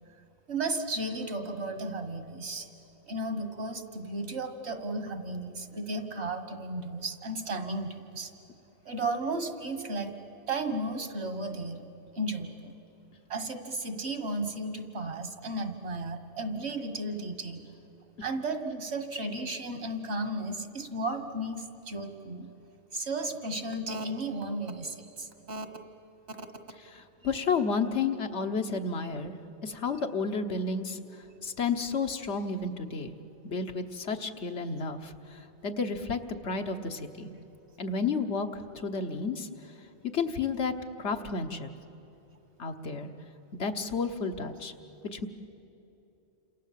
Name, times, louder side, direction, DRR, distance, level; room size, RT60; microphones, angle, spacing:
voice 1, 0.5-2.7 3.1-8.3 8.9-10.1 10.5-11.8 12.1-12.8 13.3-17.7 18.2-22.5 22.9-25.7 26.3-26.5, right 2 dB, 75° right, 8 dB, 2.0 m, -34 dB
voice 2, 26.9-29.3 29.6-31.0 31.4-33.1 33.4-37.3 37.8-39.5 40.1-40.7 41.0-41.7 42.6-43.1 43.6-44.7 45.1-45.3, left 4 dB, 85° left, 6 dB, 1.5 m, -31 dB
29.0 x 27.0 x 7.6 m, 3.0 s
omnidirectional pair, 1.1 m